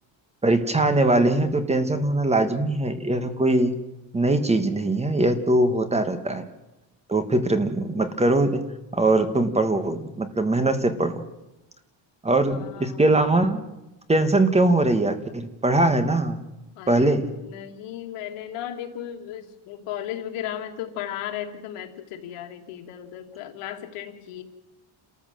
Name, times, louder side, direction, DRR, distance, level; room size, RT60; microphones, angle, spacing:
voice 1, 0.4-3.8 4.1-6.4 7.1-8.6 8.9-11.2 12.2-13.6 14.1-16.4 16.9-17.2, right 2 dB, 15° right, 9 dB, 1.3 m, -21 dB
voice 2, 12.5-13.0 16.8-24.4, left 10 dB, 90° left, 4 dB, 2.6 m, -35 dB
29.5 x 14.0 x 7.6 m, 0.97 s
cardioid pair, 165°, 50 cm